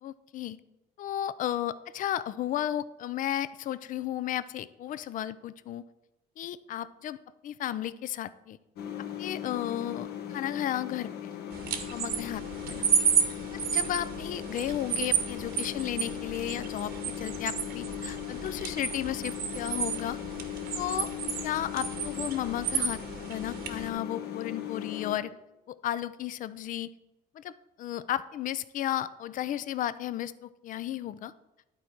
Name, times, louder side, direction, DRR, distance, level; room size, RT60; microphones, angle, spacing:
voice 1, 0.0-0.6 1.0-5.8 6.4-8.6 9.2-11.3 11.9-12.9 13.5-20.2 20.7-21.1 21.4-25.3 25.7-26.9 27.3-31.3, left 12 dB, 50° left, 16 dB, 0.4 m, -34 dB
sound 1, 8.8-25.2, left 10 dB, 70° left, 1.1 m, -38 dB
sound 2, 11.5-23.9, right 7 dB, 70° right, 1.2 m, -32 dB
11.5 x 4.2 x 4.5 m, 0.95 s
cardioid pair, 110°, 17 cm